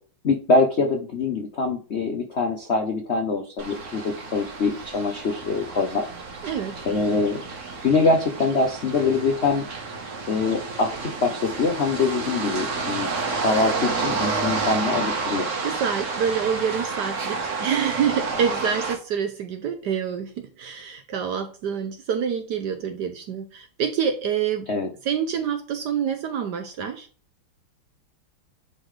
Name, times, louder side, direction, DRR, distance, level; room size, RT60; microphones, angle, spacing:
voice 1, 0.2-6.0 6.8-7.4 7.8-9.6 10.3-13.1 13.3-15.5 24.7-24.9, left 3 dB, 80° left, 3 dB, 0.6 m, -24 dB
sound 1, 3.6-19.0, right 4 dB, 40° right, 1.3 m, -30 dB
voice 2, 6.4-6.8 15.6-24.7 25.0-27.1, right 7 dB, 70° right, 7 dB, 1.0 m, -27 dB
9.7 x 3.8 x 3.2 m, 0.39 s
omnidirectional pair, 2.4 m